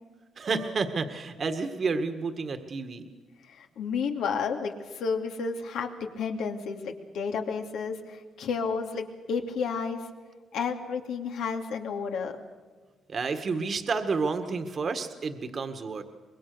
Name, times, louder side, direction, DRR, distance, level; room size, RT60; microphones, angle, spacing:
voice 1, 0.4-3.1 13.1-16.0, right 4 dB, 45° right, 7 dB, 1.8 m, -30 dB
voice 2, 3.4-10.0 10.5-12.4, left 5 dB, 80° left, 3 dB, 2.7 m, -31 dB
25.0 x 21.5 x 6.9 m, 1.4 s
cardioid pair, 90°, 0 cm